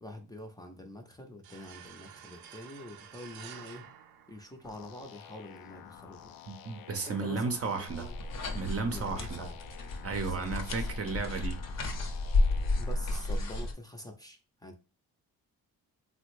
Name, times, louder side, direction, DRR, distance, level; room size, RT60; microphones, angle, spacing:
voice 1, 0.0-3.9 4.3-6.3 7.0-8.1 8.9-9.6 10.1-10.9 12.8-14.8, left 1 dB, 10° left, 0.6 m, -46 dB
sound 1, 1.4-5.0, right 8 dB, 85° right, 0.6 m, -50 dB
sound 2, 4.6-13.2, left 9 dB, 75° left, 0.5 m, -51 dB
voice 2, 6.5-8.1 8.5-9.5 10.0-11.6, right 4 dB, 40° right, 0.7 m, -34 dB
sound 3, 7.9-13.7, left 2 dB, 45° left, 0.8 m, -32 dB
3.4 x 2.1 x 3.1 m
cardioid pair, 80°, 36 cm